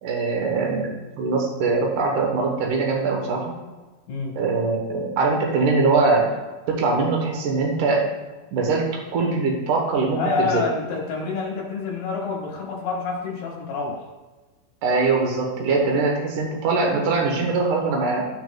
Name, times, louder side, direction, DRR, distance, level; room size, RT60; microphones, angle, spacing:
voice 1, 0.0-0.9 1.2-3.5 4.4-6.3 6.7-8.0 8.5-10.6 14.8-18.2, right 3 dB, 80° right, 0 dB, 1.8 m, -22 dB
voice 2, 10.2-14.1, left 4 dB, 65° left, -2 dB, 3.0 m, -27 dB
14.5 x 6.3 x 2.4 m, 1.2 s
omnidirectional pair, 5.5 m